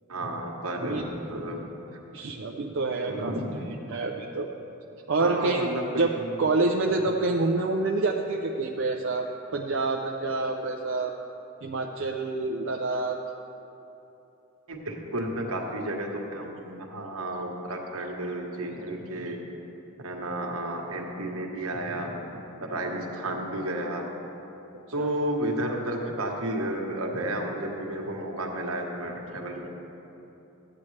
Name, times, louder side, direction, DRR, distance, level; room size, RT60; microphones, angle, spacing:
voice 1, 0.1-2.0 3.1-3.6 5.2-6.3 14.7-19.4 20.0-22.2 22.6-24.0 24.9-29.7, right 1 dB, 80° right, 0 dB, 1.3 m, -32 dB
voice 2, 2.1-3.3 3.9-4.5 5.1-5.7 6.0-6.1 6.4-11.1 11.6-13.2 25.0-25.1, right 3 dB, 60° right, 1 dB, 0.5 m, -27 dB
14.0 x 8.5 x 3.3 m, 3.0 s
head